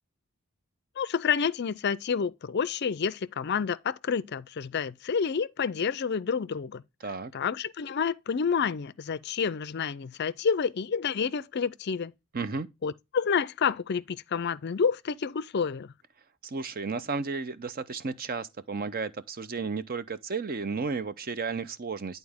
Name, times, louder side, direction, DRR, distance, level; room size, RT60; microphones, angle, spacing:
voice 1, 1.0-6.8 7.3-12.1 12.8-15.9, left 6 dB, 50° left, 0.4 m, -29 dB
voice 2, 12.3-12.7 16.4-22.2, right 4 dB, 40° right, 0.6 m, -33 dB
11.0 x 4.0 x 3.5 m
head